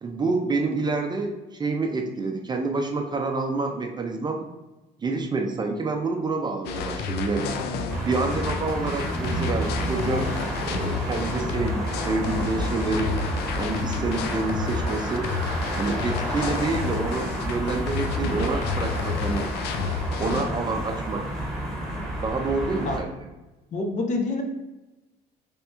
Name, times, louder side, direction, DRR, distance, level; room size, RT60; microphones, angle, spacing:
voice 1, 0.0-4.4 5.0-7.6 8.1-10.4 10.6-13.2 13.5-15.3 15.8-19.5 20.2-21.2 22.2-23.1, right 3 dB, 25° right, 3 dB, 0.4 m, -28 dB
sound 1, 6.6-20.5, left 5 dB, 75° left, 0.4 m, -31 dB
voice 2, 7.4-8.0 22.8-23.0 23.7-24.4, left 3 dB, 45° left, 2 dB, 0.7 m, -28 dB
sound 2, 7.9-23.0, equal, 5° left, 1.3 m, -30 dB
3.4 x 2.8 x 3.4 m, 1.1 s
cardioid pair, 110°, 17 cm